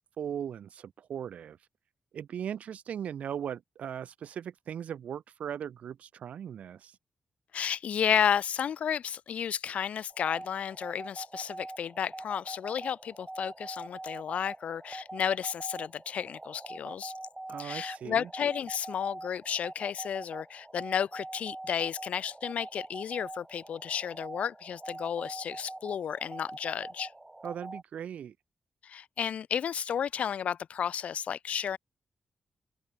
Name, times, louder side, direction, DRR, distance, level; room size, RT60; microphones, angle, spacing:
voice 1, 0.0-1.6 2.1-7.0 17.5-18.3 27.4-28.3, right 9 dB, 80° right, 1.5 m, -38 dB
voice 2, 7.5-17.1 17.6-27.1 28.8-31.8, left 8 dB, 70° left, 1.0 m, -32 dB
sound 1, 10.1-27.8, right 2 dB, 15° right, 1.7 m, -44 dB
open air
wide cardioid pair, 150°, 2 cm